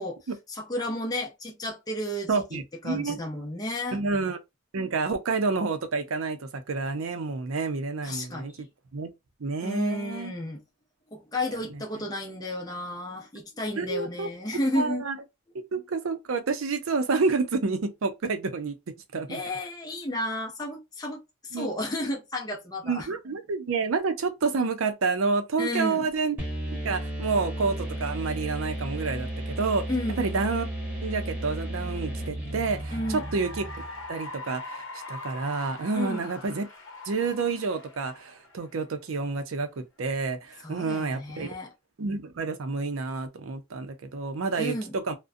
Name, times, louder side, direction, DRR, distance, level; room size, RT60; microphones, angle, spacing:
voice 1, 0.5-4.0 8.0-8.7 9.6-10.6 11.1-15.1 19.3-23.1 25.6-26.1 29.9-30.3 32.9-33.2 35.9-36.3 40.6-41.7 44.6-44.9, left 1 dB, 20° left, 0.5 m, -32 dB
voice 2, 2.3-3.2 3.9-4.4 4.7-8.7 8.9-9.1 9.4-10.3 11.7-11.8 13.8-14.3 14.8-15.2 15.7-18.7 19.1-19.4 21.5-21.7 22.8-26.4 26.7-29.3 29.6-29.8 30.2-30.7 31.0-33.6 34.1-36.6 37.1-41.5 42.0-45.1, right 4 dB, 80° right, 0.5 m, -29 dB
sound 1, 26.4-34.1, right 1 dB, 10° right, 1.0 m, -34 dB
Cheering / Applause, 32.3-39.0, left 2 dB, 65° left, 0.7 m, -42 dB
2.4 x 2.1 x 2.5 m
head